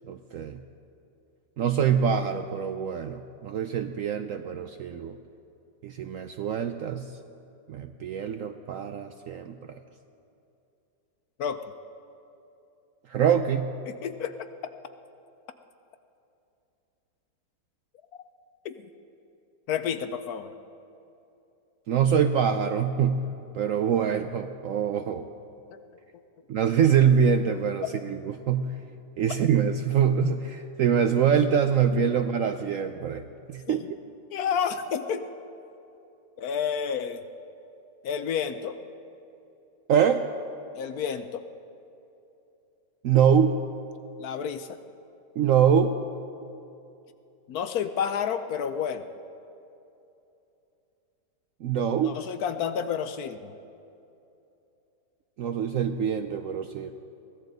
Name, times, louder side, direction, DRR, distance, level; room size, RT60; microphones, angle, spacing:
voice 1, 0.1-0.6 1.6-5.2 5.8-7.1 7.7-9.6 13.1-13.7 21.9-23.3 23.5-25.3 26.5-28.7 29.2-33.8 39.9-40.2 43.0-43.6 45.4-46.0 51.6-52.2 55.4-56.9, right 7 dB, 70° right, 8 dB, 0.8 m, -24 dB
voice 2, 13.9-14.5 18.6-18.7 19.7-20.5 25.7-25.8 27.8-27.9 33.7-33.8 34.3-35.2 36.4-37.2 38.0-38.8 40.7-41.4 44.2-44.8 47.5-49.1 52.0-53.5, left 7 dB, 65° left, 10 dB, 1.1 m, -30 dB
23.0 x 15.5 x 4.0 m, 2.8 s
omnidirectional pair, 1.9 m